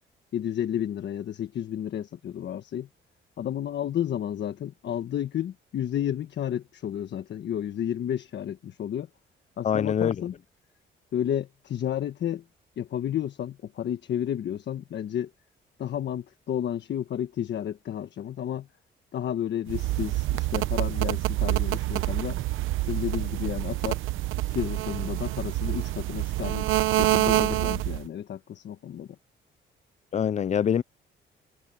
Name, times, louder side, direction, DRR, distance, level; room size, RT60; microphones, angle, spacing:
voice 1, 0.3-2.9 3.4-9.1 9.6-10.3 11.1-12.4 12.8-15.3 15.8-18.7 19.1-22.4 22.9-24.0 24.5-29.1, left 10 dB, 65° left, 1.3 m, -31 dB
voice 2, 9.6-10.2 30.1-30.8, left 8 dB, 35° left, 0.5 m, -24 dB
sound 1, 19.7-28.1, right 16 dB, 85° right, 1.0 m, -27 dB
cardioid pair, 90°, 20 cm